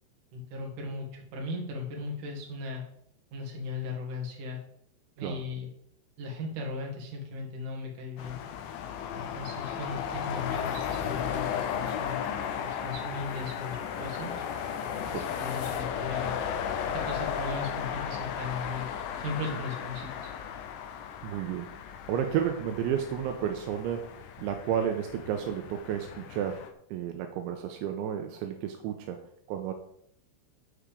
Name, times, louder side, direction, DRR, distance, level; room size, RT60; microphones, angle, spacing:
voice 1, 0.3-2.8 3.3-4.6 5.2-5.7 6.2-8.4 9.1-12.2 12.6-14.4 15.1-16.5 16.9-18.8 19.2-20.3, left 3 dB, 50° right, 0 dB, 3.3 m, -37 dB
sound 1, 8.2-26.7, left 8 dB, 90° left, 3.4 m, -35 dB
sound 2, 11.8-23.2, left 6 dB, 65° left, 2.5 m, -48 dB
voice 2, 21.2-26.7 26.9-29.2 29.5-29.7, right 9 dB, 80° right, 5 dB, 3.0 m, -32 dB
13.0 x 5.0 x 5.4 m, 0.69 s
omnidirectional pair, 5.5 m